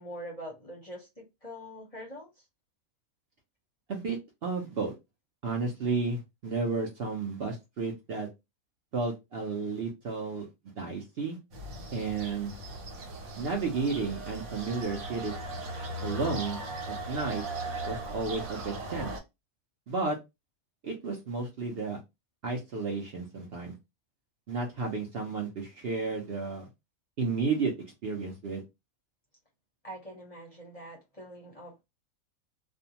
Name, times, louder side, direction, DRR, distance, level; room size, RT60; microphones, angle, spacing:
voice 1, 0.0-2.4 29.8-31.8, equal, 35° left, 0.7 m, -44 dB
voice 2, 3.9-4.9 5.4-8.3 8.9-10.5 10.8-11.4 11.9-12.5 13.4-15.4 16.0-16.6 16.9-17.4 17.9-19.1 19.9-20.2 20.8-22.0 22.4-23.7 24.5-26.7 27.2-27.7 28.0-28.6, right 4 dB, 55° right, 0.7 m, -32 dB
sound 1, 11.5-19.2, right 1 dB, 80° right, 1.4 m, -38 dB
2.5 x 2.1 x 2.7 m
omnidirectional pair, 1.5 m